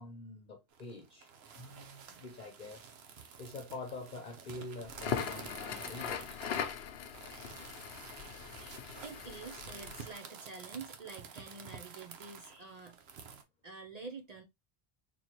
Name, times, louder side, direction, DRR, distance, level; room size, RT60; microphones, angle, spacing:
voice 1, 0.0-2.9 3.4-6.5, left 2 dB, 50° left, 0.9 m, -46 dB
sound 1, 0.7-13.4, right 6 dB, 80° right, 1.0 m, -50 dB
Crackle, 4.9-10.1, left 8 dB, 80° left, 0.9 m, -40 dB
voice 2, 8.5-13.0 13.6-14.4, right 4 dB, 45° right, 0.6 m, -48 dB
4.1 x 3.1 x 2.9 m
omnidirectional pair, 1.0 m